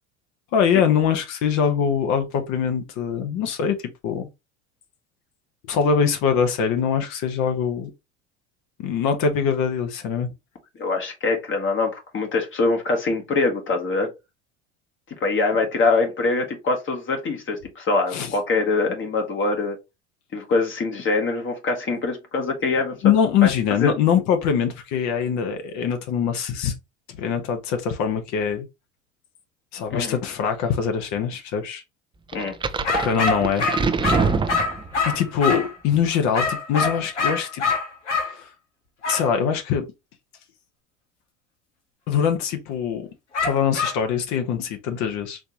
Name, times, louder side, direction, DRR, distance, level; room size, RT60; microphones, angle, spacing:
voice 1, 0.5-3.7 4.0-4.3 5.7-7.9 8.8-10.3 18.1-18.3 23.0-26.7 27.1-28.7 29.7-31.8 33.0-33.7 35.1-37.6 38.3-38.5 39.1-39.9 42.1-43.1 43.4-45.4, left 7 dB, 55° left, 1.0 m, -23 dB
voice 2, 10.8-14.1 15.1-19.8 20.3-23.1 23.4-23.5 23.8-23.9 29.9-30.2 32.3-32.5, left 3 dB, 35° left, 1.2 m, -23 dB
sound 1, 32.3-35.2, right 4 dB, 15° right, 0.5 m, -25 dB
sound 2, 32.8-35.8 36.3-38.3 39.0-39.3 43.3-44.0, left 4 dB, 85° left, 1.2 m, -24 dB
4.3 x 2.8 x 2.9 m
hypercardioid pair, 75°, 34 cm